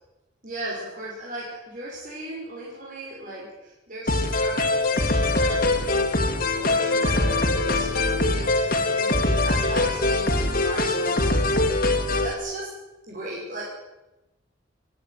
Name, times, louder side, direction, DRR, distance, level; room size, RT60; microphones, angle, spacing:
voice 1, 0.4-11.9 12.2-12.7 13.1-13.6, right 1 dB, 45° right, -4 dB, 6.0 m, -37 dB
sound 1, 4.1-12.3, left 2 dB, 50° left, 2.5 m, -22 dB
29.5 x 10.5 x 9.5 m, 1.0 s
head